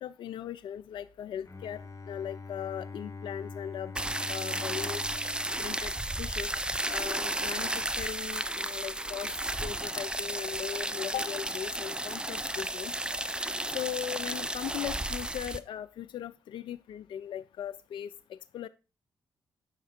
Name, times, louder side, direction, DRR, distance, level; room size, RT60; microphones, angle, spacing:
voice 1, 0.0-1.8 2.1-3.9 4.3-5.0 5.6-6.5 6.9-9.3 9.6-12.9 13.7-18.7, left 10 dB, 60° left, 14 dB, 0.4 m, -38 dB
Bowed string instrument, 1.4-6.7, left 4 dB, 35° left, 1.1 m, -44 dB
sound 1, 3.9-15.6, right 1 dB, 10° right, 0.6 m, -33 dB
7.3 x 5.8 x 4.2 m, 0.32 s
hypercardioid pair, 45°, 9 cm